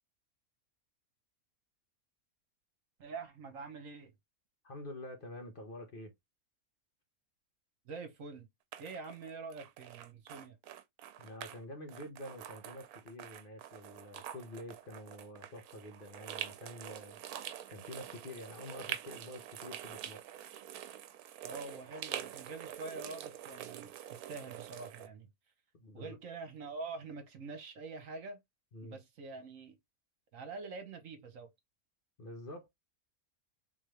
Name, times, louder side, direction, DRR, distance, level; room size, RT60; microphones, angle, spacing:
voice 1, 3.0-4.1 7.8-8.5 8.8-10.6 21.4-25.3 25.9-28.4 28.8-29.8 30.3-31.5, right 4 dB, 65° right, 1.3 m, -45 dB
voice 2, 4.6-6.1 11.2-17.2 17.7-20.2 25.7-26.2 28.7-29.0 32.2-32.7, left 1 dB, 45° left, 1.0 m, -47 dB
sound 1, 8.7-11.6 11.9-25.1, right 11 dB, 85° right, 1.1 m, -46 dB
3.8 x 3.2 x 3.1 m
omnidirectional pair, 1.5 m